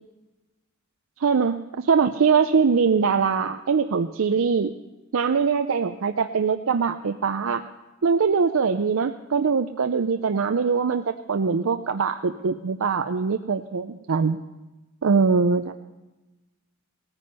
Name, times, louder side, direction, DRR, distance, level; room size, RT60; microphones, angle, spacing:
voice 1, 1.2-4.7 5.1-7.6 8.0-14.4 15.0-15.8, right 5 dB, 85° right, 8 dB, 0.5 m, -22 dB
18.0 x 9.8 x 5.5 m, 1.1 s
head